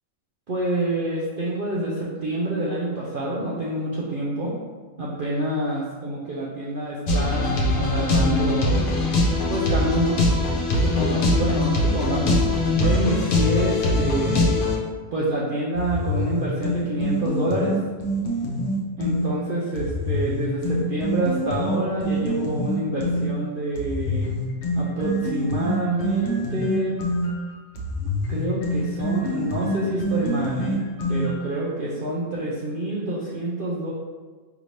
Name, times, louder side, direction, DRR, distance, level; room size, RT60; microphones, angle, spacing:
voice 1, 0.5-4.5 5.0-8.8 9.5-10.2 10.8-12.4 12.7-14.5 15.1-17.8 19.0-24.3 24.7-26.9 28.3-30.8 31.1-33.9, right 1 dB, 55° right, -6 dB, 0.6 m, -27 dB
sound 1, 7.1-14.8, left 2 dB, 80° left, 1.2 m, -21 dB
sound 2, 15.7-19.3 19.7-23.3 23.7-31.5, equal, 60° left, 1.1 m, -26 dB
4.9 x 2.7 x 3.2 m, 1.4 s
omnidirectional pair, 1.5 m